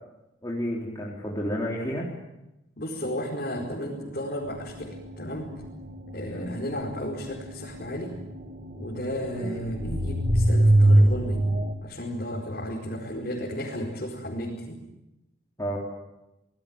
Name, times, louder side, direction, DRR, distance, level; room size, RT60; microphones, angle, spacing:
voice 1, 0.4-2.1 6.3-6.5 9.4-9.5 15.6-15.8, equal, 20° left, -3 dB, 3.9 m, -31 dB
voice 2, 2.8-5.5 6.1-8.1 8.8-11.4 11.8-14.8, equal, 50° left, -3 dB, 4.9 m, -33 dB
sound 1, 4.5-11.7, right 1 dB, 35° right, 1.7 m, -23 dB
27.5 x 19.5 x 8.9 m, 0.94 s
head